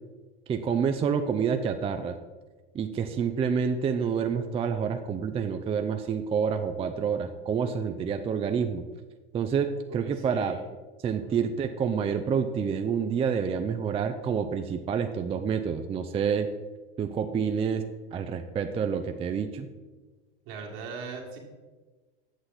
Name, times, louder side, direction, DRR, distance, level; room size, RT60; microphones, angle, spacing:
voice 1, 0.5-2.2 2.7-8.8 9.3-10.6 11.0-16.5 17.0-19.7, right 6 dB, 20° right, 7 dB, 0.4 m, -28 dB
voice 2, 10.0-10.6 11.2-11.4 20.5-21.4, right 5 dB, 65° right, -1 dB, 2.0 m, -39 dB
8.2 x 6.2 x 4.0 m, 1.3 s
hypercardioid pair, 100°, 30 cm